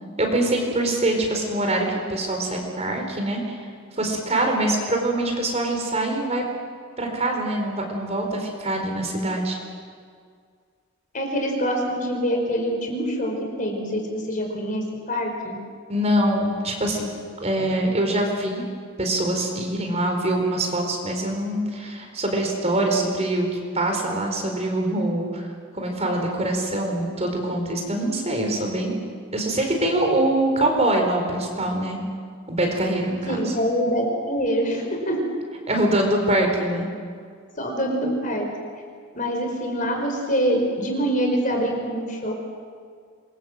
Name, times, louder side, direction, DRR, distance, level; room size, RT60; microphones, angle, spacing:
voice 1, 0.2-3.4 4.0-6.4 7.0-9.6 15.9-17.1 17.4-18.6 19.0-23.5 23.7-25.5 25.7-29.0 29.3-32.0 32.5-33.5 35.7-36.9, right 1 dB, 30° right, 2 dB, 4.6 m, -24 dB
voice 2, 11.1-15.6 33.3-35.2 37.6-38.5 39.1-42.3, equal, 40° left, 2 dB, 4.9 m, -25 dB
26.5 x 23.0 x 7.8 m, 2.1 s
head